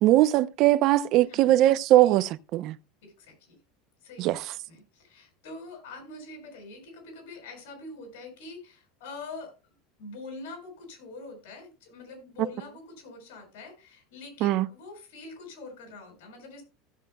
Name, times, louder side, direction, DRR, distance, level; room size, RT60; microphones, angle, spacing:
voice 1, 0.0-2.8 4.2-4.4 14.4-14.7, right 14 dB, 40° right, 0.6 m, -21 dB
voice 2, 1.2-1.5 2.0-2.2 3.0-3.6 4.0-9.5 10.0-16.6, left 3 dB, 75° left, 6.6 m, -44 dB
16.0 x 7.5 x 2.3 m
supercardioid pair, 165°, 0 cm